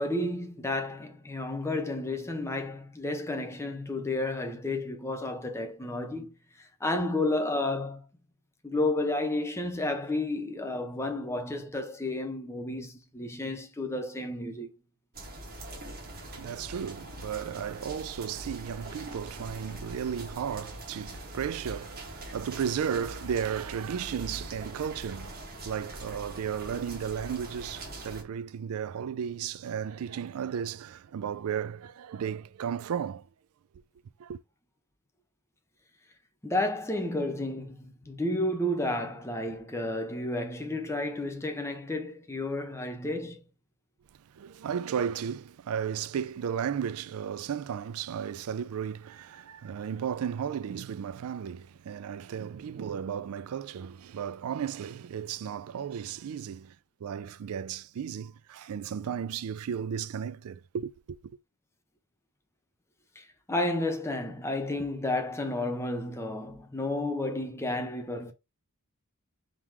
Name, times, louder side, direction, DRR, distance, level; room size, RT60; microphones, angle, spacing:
voice 1, 0.0-8.0 8.6-14.7 36.4-43.4 63.2-68.3, left 2 dB, 10° left, 0.8 m, -31 dB
sound 1, 15.1-28.2, right 1 dB, 45° right, 1.3 m, -43 dB
voice 2, 15.8-33.3 34.2-34.4 44.3-56.8 57.0-61.2, right 8 dB, 80° right, 0.4 m, -34 dB
3.7 x 3.0 x 4.7 m
head